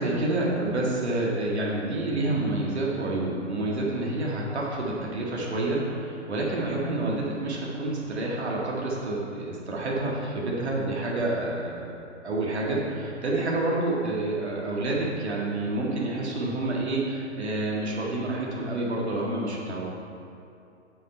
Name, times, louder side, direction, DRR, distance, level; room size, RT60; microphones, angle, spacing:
voice 1, 0.0-12.0 12.2-19.8, right 2 dB, 60° right, -3 dB, 2.1 m, -28 dB
7.2 x 7.0 x 4.5 m, 2.7 s
figure-of-eight pair, 125°, 36 cm